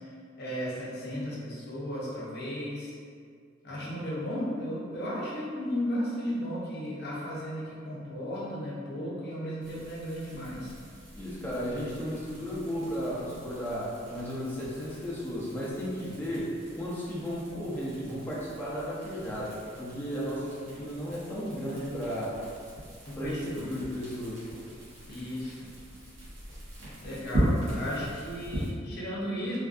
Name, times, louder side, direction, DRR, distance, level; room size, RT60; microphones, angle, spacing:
voice 1, 0.4-2.9 3.6-10.7 23.1-23.6 25.0-25.7 27.0-29.6, equal, 55° left, -6 dB, 0.8 m, -35 dB
sound 1, 9.6-28.7, equal, 80° right, 1.1 m, -39 dB
voice 2, 11.2-22.4 23.2-24.5, equal, 10° left, -8 dB, 0.6 m, -34 dB
3.4 x 2.5 x 2.5 m, 2.2 s
head